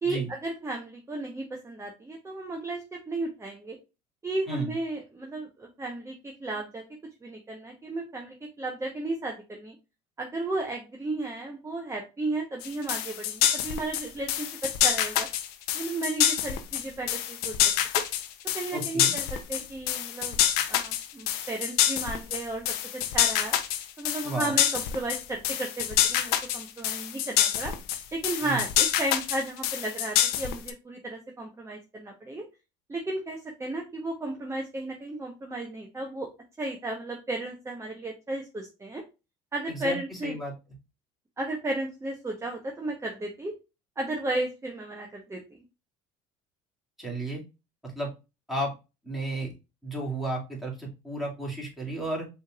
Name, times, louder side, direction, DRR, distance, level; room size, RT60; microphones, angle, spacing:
voice 1, 0.0-3.8 4.2-6.8 7.2-9.8 10.2-15.3 15.7-17.5 18.5-20.4 20.7-22.7 23.1-23.5 24.0-27.7 28.1-32.4 32.9-36.3 36.6-39.0 39.5-40.4 41.4-43.5 44.0-45.4, right 2 dB, 15° right, 1 dB, 1.0 m, -34 dB
sound 1, 12.6-30.7, left 11 dB, 75° left, 0.7 m, -26 dB
voice 2, 18.7-19.1 24.2-24.5 28.4-28.6 39.7-40.5 47.0-47.4 47.8-48.1 48.5-48.7 49.0-49.5 49.8-52.3, right 1 dB, ahead, -2 dB, 2.3 m, -33 dB
5.4 x 3.3 x 2.4 m, 0.27 s
supercardioid pair, 90°, 16 cm